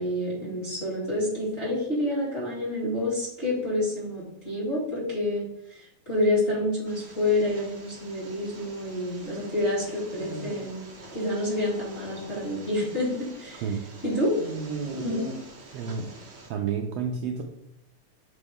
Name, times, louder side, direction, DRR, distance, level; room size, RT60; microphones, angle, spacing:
voice 1, 0.0-10.8 11.1-13.6 14.0-14.3 14.8-15.2, left 1 dB, 25° left, -7 dB, 1.8 m, -28 dB
sound 1, 6.9-16.5, right 3 dB, 55° right, 1.3 m, -41 dB
voice 2, 15.7-16.2 16.5-17.4, right 6 dB, 90° right, 2 dB, 1.4 m, -30 dB
6.9 x 4.2 x 3.5 m, 0.80 s
omnidirectional pair, 3.5 m